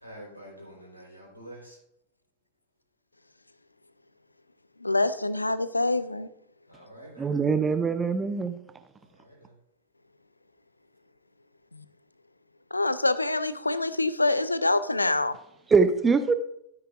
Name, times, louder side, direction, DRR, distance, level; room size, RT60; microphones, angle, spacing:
voice 1, 0.0-1.8 6.7-7.3 9.1-9.5, right 1 dB, 90° right, -2 dB, 4.1 m, -47 dB
voice 2, 4.8-6.3 11.7-11.8 12.7-15.4, left 2 dB, 85° left, 15 dB, 0.5 m, -25 dB
voice 3, 7.2-8.6 15.7-16.3, right 5 dB, 15° right, 10 dB, 0.6 m, -23 dB
13.0 x 9.4 x 2.5 m, 0.76 s
figure-of-eight pair, 90°, 0 cm